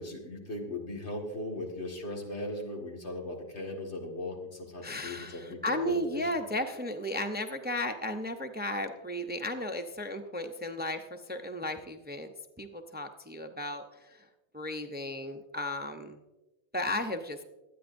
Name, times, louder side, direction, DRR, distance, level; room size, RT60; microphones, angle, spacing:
voice 1, 0.0-6.3, left 1 dB, 90° left, 0 dB, 2.2 m, -38 dB
voice 2, 4.8-12.3 12.6-14.3 14.5-16.2 16.7-17.4, left 1 dB, 10° right, 6 dB, 0.5 m, -34 dB
23.0 x 9.3 x 2.6 m, 1.1 s
omnidirectional pair, 1.1 m